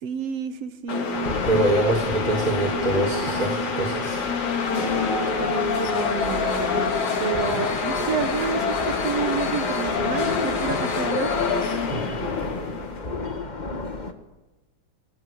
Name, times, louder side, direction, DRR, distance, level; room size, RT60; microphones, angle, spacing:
voice 1, 0.0-1.3 4.7-6.9 7.2-11.3, right 7 dB, 65° right, 11 dB, 2.3 m, -30 dB
sound 1, 0.9-13.2, left 5 dB, 80° left, 4.1 m, -26 dB
sound 2, 1.1-14.1, left 3 dB, 25° left, 1.1 m, -33 dB
voice 2, 1.5-4.2 11.9-12.0, right 2 dB, 15° right, 0 dB, 2.5 m, -24 dB
28.0 x 20.0 x 8.6 m, 1.1 s
omnidirectional pair, 3.3 m